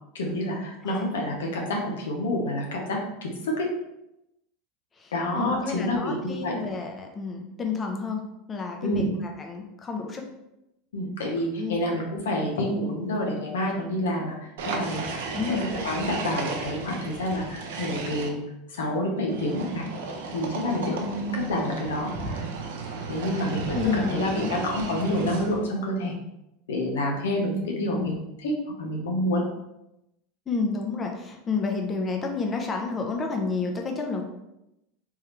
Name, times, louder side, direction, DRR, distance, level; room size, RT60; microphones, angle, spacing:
voice 1, 0.1-3.7 5.1-6.5 8.8-9.1 10.9-15.1 15.5-18.4 18.7-19.9 20.3-22.5 23.1-26.1 26.7-28.5 28.8-29.4, left 1 dB, 85° left, 0 dB, 0.9 m, -28 dB
voice 2, 5.0-8.2 8.5-9.0 9.4-10.3 11.6-12.0 15.3-15.7 23.7-25.1 27.5-27.6 27.9-28.1 30.5-34.2, left 4 dB, 25° left, 2 dB, 0.7 m, -30 dB
sound 1, 14.6-18.3 19.3-25.7, right 4 dB, 80° right, 0.7 m, -34 dB
3.6 x 3.2 x 3.1 m, 0.87 s
hypercardioid pair, 100°, 0 cm